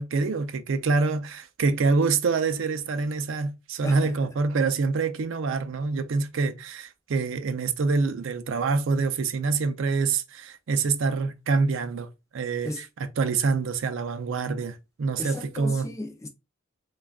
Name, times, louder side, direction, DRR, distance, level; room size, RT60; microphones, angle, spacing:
voice 1, 0.0-15.9, right 4 dB, 60° right, 0.4 m, -26 dB
voice 2, 3.8-4.1 12.6-12.8 15.2-16.3, left 1 dB, 15° left, 0.4 m, -34 dB
3.5 x 2.3 x 2.2 m
head